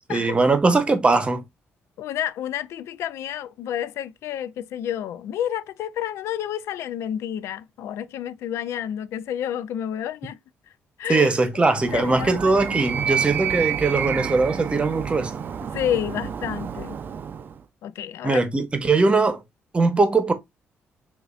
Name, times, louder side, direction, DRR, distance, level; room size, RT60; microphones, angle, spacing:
voice 1, 0.1-1.4 11.1-15.3 18.2-19.4 19.7-20.3, right 3 dB, 25° right, 0.9 m, -20 dB
voice 2, 2.0-10.4 11.0-11.3 11.9-12.4 15.7-17.0 17.8-18.6, left 10 dB, 85° left, 0.3 m, -30 dB
Animal, 11.7-17.6, right 8 dB, 45° right, 0.4 m, -29 dB
6.5 x 2.5 x 2.4 m
cardioid pair, 120°, 5 cm